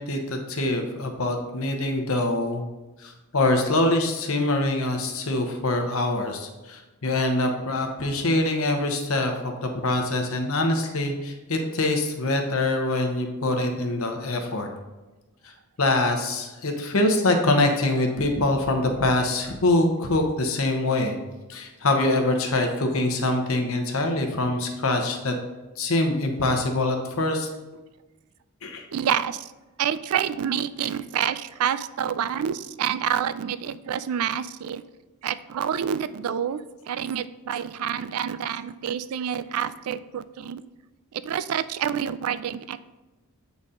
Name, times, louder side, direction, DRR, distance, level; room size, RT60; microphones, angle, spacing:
voice 1, 0.0-2.7 3.0-14.7 15.8-21.2 21.5-25.3 25.8-27.5 28.6-28.8, left 2 dB, 70° left, 4 dB, 0.9 m, -24 dB
voice 2, 28.9-29.5 29.8-34.8 35.2-40.6 41.1-42.8, right 9 dB, 80° right, 14 dB, 0.3 m, -28 dB
8.1 x 4.1 x 3.7 m, 1.1 s
head